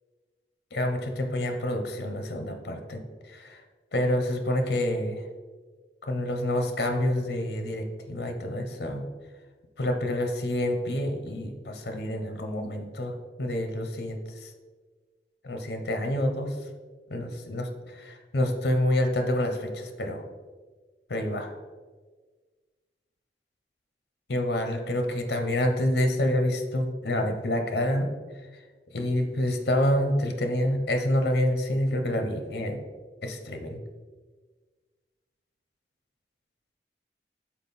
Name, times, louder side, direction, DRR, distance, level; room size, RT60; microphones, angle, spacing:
voice 1, 0.7-3.0 3.3-3.6 3.9-5.2 6.0-9.0 9.8-14.5 15.4-16.6 17.1-20.2 21.1-21.5 24.3-28.1 28.9-32.8 33.2-33.8, left 1 dB, 65° left, 5 dB, 0.7 m, -28 dB
5.6 x 4.4 x 4.1 m, 1.4 s
head